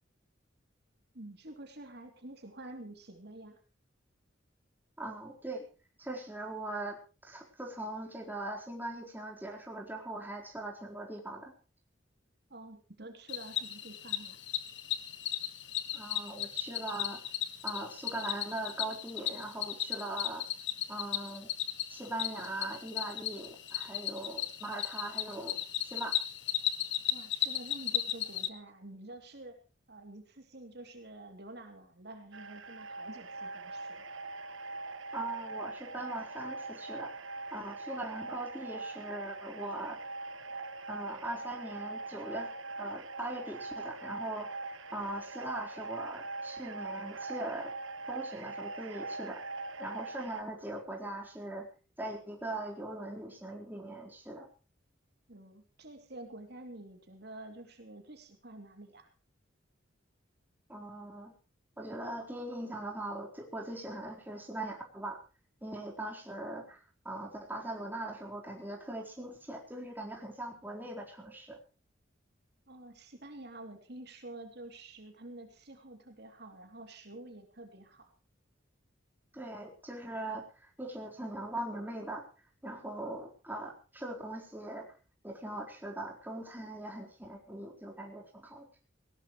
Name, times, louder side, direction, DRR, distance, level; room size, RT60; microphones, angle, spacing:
voice 1, 1.1-3.6 12.5-14.4 27.1-29.6 29.9-34.1 55.3-59.1 72.7-78.1, right 1 dB, 55° right, 5 dB, 3.0 m, -48 dB
voice 2, 5.0-5.6 6.0-11.5 15.9-17.2 17.6-20.4 20.9-21.5 21.9-26.2 35.1-37.1 37.5-40.0 40.9-42.5 42.8-47.7 48.1-49.4 49.8-51.7 52.0-54.5 60.7-61.3 61.8-65.2 65.6-71.6 79.3-82.2 82.6-84.9 85.2-88.6, right 1 dB, 10° right, -1 dB, 4.1 m, -41 dB
Cricket, 13.3-28.5, left 12 dB, 65° left, 1.5 m, -36 dB
sound 1, 32.3-50.4, right 3 dB, 85° right, 1.3 m, -42 dB
19.0 x 18.5 x 3.1 m, 0.36 s
head